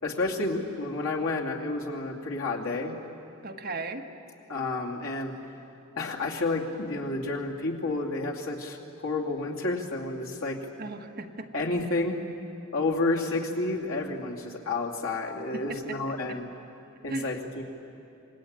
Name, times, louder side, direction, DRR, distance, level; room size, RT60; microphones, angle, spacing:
voice 1, 0.0-2.9 4.5-5.3 6.0-10.6 11.5-12.2 12.7-16.5 17.0-17.6, left 2 dB, 85° left, -1 dB, 2.8 m, -30 dB
voice 2, 3.4-4.0 10.8-11.5 15.5-16.0 16.3-16.4 17.1-17.4, right 3 dB, 45° right, 3 dB, 1.5 m, -36 dB
27.0 x 20.5 x 8.9 m, 2.7 s
head